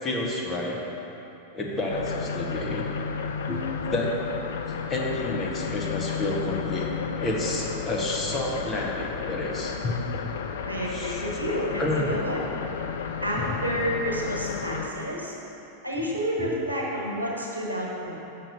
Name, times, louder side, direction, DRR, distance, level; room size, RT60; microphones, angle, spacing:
voice 1, 0.0-0.8 1.5-2.9 3.5-4.2 4.9-6.9 7.2-9.9 10.9-11.2 11.8-12.1 16.4-16.5, left 1 dB, 25° left, -2 dB, 1.2 m, -29 dB
sound 1, 1.9-14.9, left 6 dB, 60° left, 0.4 m, -33 dB
voice 2, 9.8-10.2 10.6-12.4 13.2-15.3 15.8-18.1, equal, 80° right, -3 dB, 1.3 m, -30 dB
6.5 x 5.9 x 5.3 m, 2.9 s
figure-of-eight pair, 90°, 0 cm